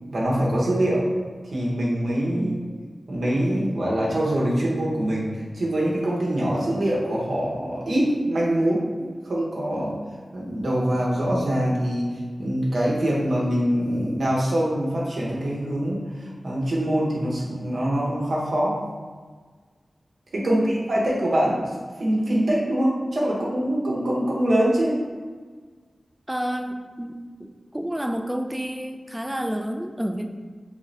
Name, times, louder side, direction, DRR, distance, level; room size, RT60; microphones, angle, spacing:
voice 1, 0.1-1.1 1.5-2.5 3.1-9.9 10.3-12.1 12.4-18.8 20.3-21.6 22.0-25.0, right 1 dB, 80° right, -5 dB, 0.9 m, -24 dB
voice 2, 2.3-2.7 20.4-20.8 26.3-27.1 27.4-27.5 27.7-30.3, equal, 10° right, 5 dB, 0.3 m, -29 dB
3.5 x 2.6 x 3.2 m, 1.5 s
cardioid pair, 45°, 0 cm